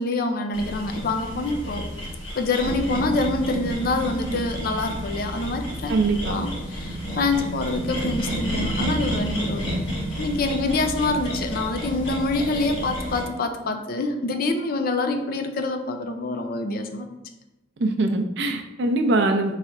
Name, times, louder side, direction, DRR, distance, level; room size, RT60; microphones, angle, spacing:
voice 1, 0.0-1.8 2.4-5.9 6.3-9.7 10.2-17.1, left 3 dB, 50° left, 6 dB, 0.4 m, -26 dB
sound 1, 0.5-13.2, right 1 dB, 65° left, 1.2 m, -30 dB
voice 2, 5.9-6.4 17.8-19.6, right 2 dB, 60° right, 5 dB, 0.5 m, -22 dB
4.1 x 2.4 x 4.5 m, 1.0 s
head